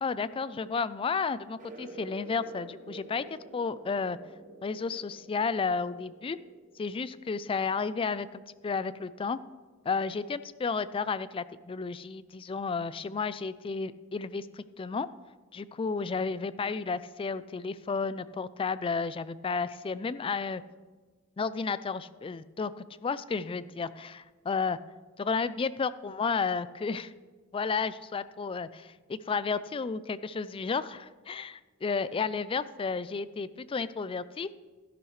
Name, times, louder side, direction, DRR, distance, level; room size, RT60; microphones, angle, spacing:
voice 1, 0.0-3.2 3.5-4.2 4.6-6.4 6.8-9.4 9.8-15.1 15.5-20.6 21.4-24.8 25.2-27.1 27.5-34.5, left 5 dB, 25° left, 15 dB, 0.3 m, -32 dB
sound 1, 1.6-7.7, right 1 dB, 40° right, 1.2 m, -48 dB
13.0 x 11.0 x 3.1 m, 1.4 s
head